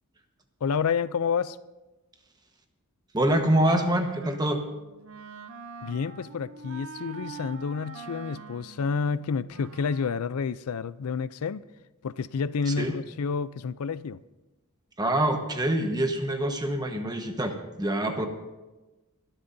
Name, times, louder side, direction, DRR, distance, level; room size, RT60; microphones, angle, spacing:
voice 1, 0.6-1.6 5.8-11.6 12.0-14.2, left 5 dB, 90° left, 0.4 m, -29 dB
voice 2, 3.1-4.6 12.7-12.9 15.0-18.3, right 1 dB, 20° right, 1.2 m, -25 dB
Wind instrument woodwind instrument, 3.8-10.4, right 4 dB, 65° right, 0.8 m, -45 dB
24.0 x 12.0 x 2.7 m
head